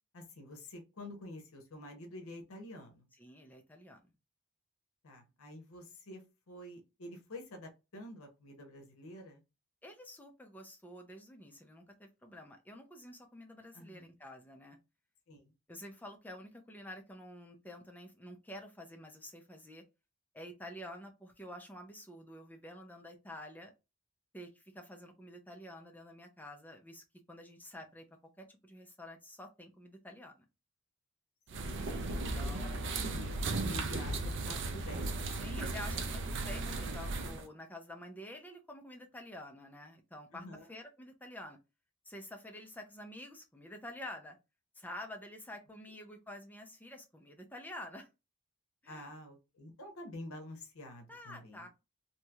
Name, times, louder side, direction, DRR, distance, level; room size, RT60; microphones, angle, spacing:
voice 1, 0.1-3.1 5.0-9.4 13.7-14.1 15.3-15.5 32.6-32.8 33.1-35.1 40.3-40.7 48.9-51.7, left 1 dB, 75° left, 0.7 m, -48 dB
voice 2, 3.2-4.1 9.8-14.8 15.7-19.8 20.3-23.7 24.3-28.1 28.4-30.4 32.1-32.9 35.3-41.6 42.1-44.4 44.7-48.1 48.8-49.1 51.1-51.7, left 1 dB, 10° left, 0.4 m, -49 dB
sound 1, 31.5-37.5, right 2 dB, 55° right, 0.5 m, -36 dB
3.0 x 2.7 x 2.3 m
head